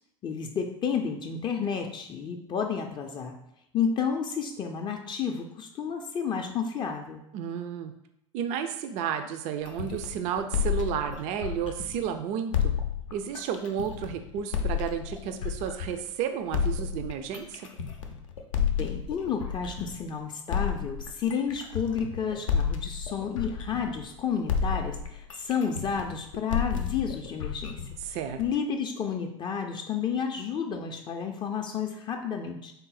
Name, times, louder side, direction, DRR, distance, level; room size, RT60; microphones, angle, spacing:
voice 1, 0.2-3.4 3.7-7.2 18.8-27.8 28.1-32.7, left 6 dB, 30° left, 4 dB, 0.4 m, -31 dB
voice 2, 7.3-7.9 8.3-12.7 13.1-17.7 28.1-28.4, right 8 dB, 45° right, 8 dB, 0.4 m, -32 dB
sound 1, 9.7-12.1 12.5-16.1 16.5-20.1 20.5-24.2 24.5-28.6, left 7 dB, 85° left, 0.5 m, -31 dB
3.8 x 2.0 x 4.0 m, 0.78 s
hypercardioid pair, 85°, 16 cm